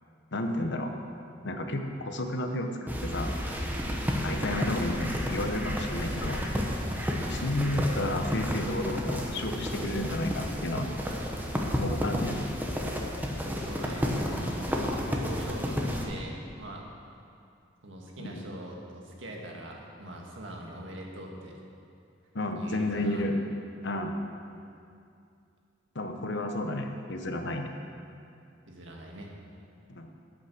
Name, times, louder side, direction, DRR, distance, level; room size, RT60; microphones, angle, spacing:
voice 1, 0.3-0.9 1.4-3.3 4.2-6.5 7.2-10.9 11.8-12.4 18.2-18.4 22.3-23.4 23.8-24.2 25.9-27.7 29.9-30.1, left 1 dB, 65° left, 4 dB, 1.0 m, -31 dB
sound 1, 2.9-16.1, equal, 10° right, 1.1 m, -31 dB
voice 2, 13.5-16.8 17.8-21.6 22.5-23.2 28.7-29.3, right 1 dB, 75° right, 0 dB, 1.7 m, -42 dB
9.6 x 8.5 x 6.6 m, 2.5 s
head